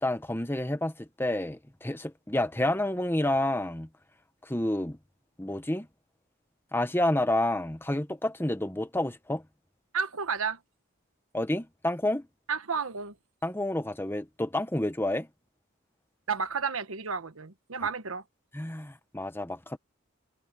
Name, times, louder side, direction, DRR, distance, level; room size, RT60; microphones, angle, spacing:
voice 1, 0.0-3.9 4.4-5.0 5.4-5.9 6.7-9.4 11.3-12.3 13.4-15.3 18.5-19.8, left 1 dB, 10° left, 1.1 m, -29 dB
voice 2, 9.9-10.6 12.5-13.1 16.3-18.2, right 5 dB, 80° right, 1.3 m, -31 dB
head